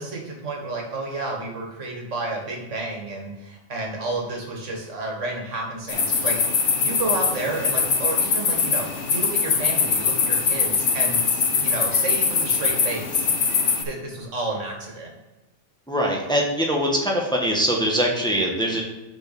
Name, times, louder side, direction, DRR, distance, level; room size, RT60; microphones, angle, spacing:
voice 1, 0.0-6.4 6.8-13.3 13.8-15.1, right 2 dB, 85° right, 0 dB, 1.9 m, -31 dB
sound 1, 5.9-13.8, left 5 dB, 75° left, 1.3 m, -22 dB
voice 2, 15.9-18.8, equal, 5° left, -1 dB, 1.2 m, -22 dB
6.4 x 4.8 x 5.9 m, 1.1 s
omnidirectional pair, 1.2 m